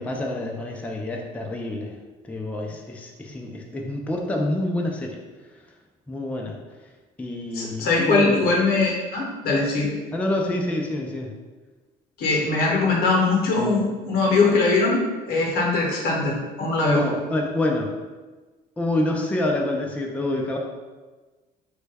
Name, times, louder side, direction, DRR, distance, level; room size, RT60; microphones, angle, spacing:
voice 1, 0.0-1.9 2.3-5.2 6.1-6.6 7.2-8.5 10.1-11.3 16.9-17.9 18.8-20.6, left 1 dB, 10° left, 1 dB, 0.3 m, -27 dB
voice 2, 7.5-9.9 12.2-17.0, left 3 dB, 70° left, -1 dB, 0.8 m, -21 dB
3.1 x 2.2 x 3.3 m, 1.3 s
cardioid pair, 110°, 17 cm